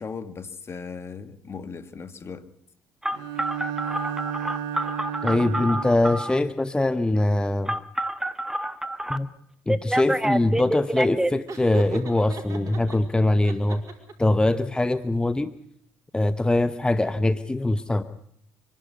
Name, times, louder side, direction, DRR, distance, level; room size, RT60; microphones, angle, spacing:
voice 1, 0.0-2.5, left 5 dB, 35° left, 1.9 m, -37 dB
Telephone, 3.0-6.4 7.7-9.2 9.7-11.3, right 1 dB, 5° right, 1.3 m, -27 dB
Bowed string instrument, 3.1-6.3, right 9 dB, 70° right, 1.1 m, -33 dB
voice 2, 5.2-7.8 9.1-9.3 9.7-13.8 14.2-15.5 16.1-18.0, left 2 dB, 10° left, 0.9 m, -22 dB
Laughter, 11.5-13.0 13.4-14.3, right 4 dB, 50° right, 5.6 m, -36 dB
25.0 x 12.0 x 9.6 m
supercardioid pair, 70°, 7 cm